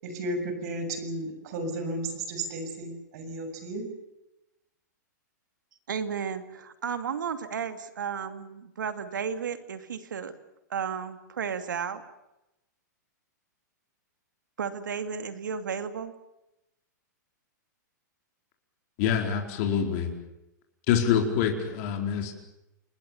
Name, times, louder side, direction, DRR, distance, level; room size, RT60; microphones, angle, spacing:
voice 1, 0.0-3.8, right 1 dB, 55° right, 8 dB, 7.3 m, -33 dB
voice 2, 5.9-10.3 10.7-12.0 14.6-16.1, right 7 dB, 85° right, 9 dB, 2.6 m, -33 dB
voice 3, 19.0-20.1 20.9-22.3, left 8 dB, 50° left, 3 dB, 4.7 m, -25 dB
29.0 x 20.5 x 7.1 m, 0.92 s
hypercardioid pair, 125°, 10 cm